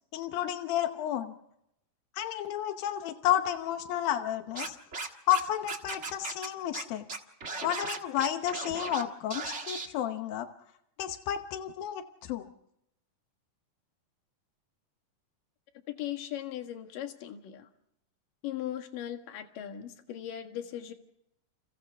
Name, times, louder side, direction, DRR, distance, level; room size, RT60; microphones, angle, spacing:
voice 1, 0.1-1.3 2.1-4.8 5.3-7.0 7.6-10.5 11.0-12.5, left 11 dB, 90° left, 7 dB, 2.8 m, -31 dB
Scratching (performance technique), 4.5-5.4 5.7-6.5 6.7-6.8 7.1-9.0 9.3-9.9, right 4 dB, 40° right, 1.0 m, -37 dB
voice 2, 15.9-17.7 18.4-20.9, left 11 dB, 70° left, 6 dB, 3.3 m, -38 dB
30.0 x 29.5 x 3.6 m, 0.79 s
omnidirectional pair, 4.0 m